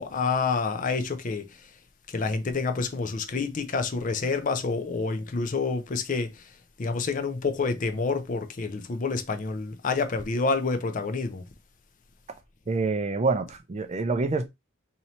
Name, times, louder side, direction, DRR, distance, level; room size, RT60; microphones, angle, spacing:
voice 1, 0.0-1.6 2.1-6.4 6.8-11.4, left 4 dB, 40° left, 0.5 m, -28 dB
voice 2, 12.7-14.5, right 3 dB, 30° right, 0.4 m, -26 dB
3.0 x 2.8 x 4.1 m
head